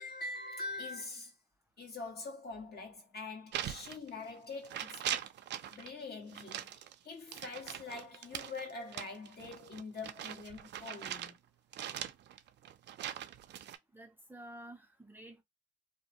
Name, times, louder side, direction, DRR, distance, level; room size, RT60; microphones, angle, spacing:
voice 1, 0.0-1.3 1.8-5.0 5.7-11.4, left 3 dB, 55° left, 1.4 m, -44 dB
sound 1, 3.5-4.4 4.6-5.9 6.3-11.4 11.7-13.8, right 10 dB, 60° right, 0.4 m, -41 dB
voice 2, 13.9-15.4, right 1 dB, 10° right, 0.6 m, -51 dB
2.7 x 2.2 x 2.8 m
cardioid pair, 90°, 20 cm